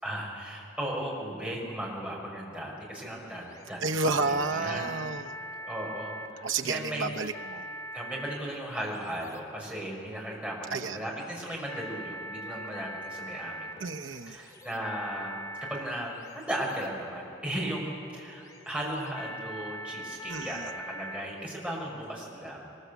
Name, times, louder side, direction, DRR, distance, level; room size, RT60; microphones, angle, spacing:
voice 1, 0.0-5.0 5.6-7.1 7.9-13.9 14.3-22.7, right 1 dB, 5° right, -3 dB, 5.4 m, -36 dB
sound 1, 2.4-21.5, equal, 20° left, 1.7 m, -43 dB
voice 2, 3.8-5.3 6.4-7.6 10.7-11.0 13.8-14.4 20.3-20.7, right 3 dB, 80° right, 5 dB, 1.0 m, -31 dB
23.0 x 21.5 x 8.3 m, 3.0 s
head